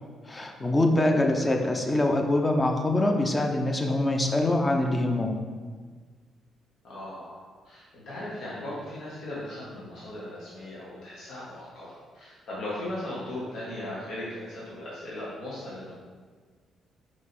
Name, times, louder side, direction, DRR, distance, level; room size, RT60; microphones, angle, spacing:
voice 1, 0.3-5.4, left 1 dB, 20° left, 3 dB, 0.8 m, -24 dB
voice 2, 6.8-15.9, left 1 dB, 70° left, -8 dB, 1.7 m, -38 dB
4.9 x 4.8 x 4.3 m, 1.5 s
cardioid pair, 90°, 0 cm